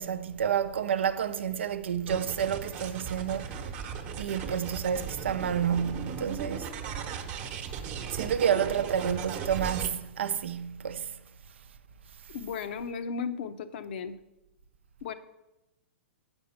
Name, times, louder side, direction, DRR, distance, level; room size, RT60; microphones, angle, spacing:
voice 1, 0.0-3.6 4.2-6.7 8.1-11.2, right 8 dB, 70° right, 0.6 m, -29 dB
sound 1, 2.1-9.9, right 7 dB, 35° right, 1.0 m, -37 dB
voice 2, 12.3-14.2 15.0-15.1, left 6 dB, 60° left, 0.7 m, -35 dB
8.4 x 5.3 x 5.8 m
hypercardioid pair, 120°, 6 cm